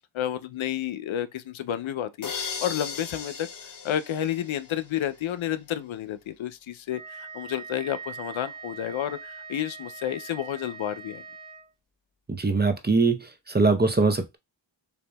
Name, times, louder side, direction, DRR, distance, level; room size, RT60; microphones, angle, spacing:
voice 1, 0.1-11.2, left 11 dB, 85° left, 0.5 m, -31 dB
sound 1, 2.2-5.1, left 6 dB, 45° left, 0.7 m, -37 dB
Wind instrument woodwind instrument, 6.9-11.7, right 5 dB, 90° right, 1.9 m, -42 dB
voice 2, 12.3-14.4, right 3 dB, 20° right, 0.7 m, -22 dB
6.9 x 2.7 x 2.2 m
wide cardioid pair, 80°, 46 cm